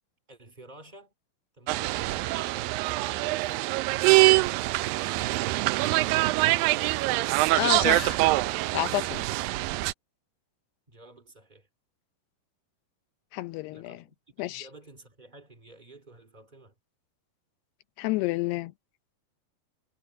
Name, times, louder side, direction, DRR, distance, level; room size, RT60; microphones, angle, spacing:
voice 1, 0.3-1.1 1.6-4.8 10.9-11.7 13.7-16.7, right 2 dB, 20° right, 1.4 m, -51 dB
sound 1, 1.7-9.9, right 20 dB, 90° right, 2.0 m, -24 dB
voice 2, 7.6-8.2 8.7-9.3 13.3-14.0 14.4-14.7 18.0-18.7, left 17 dB, 80° left, 2.7 m, -29 dB
omnidirectional pair, 4.8 m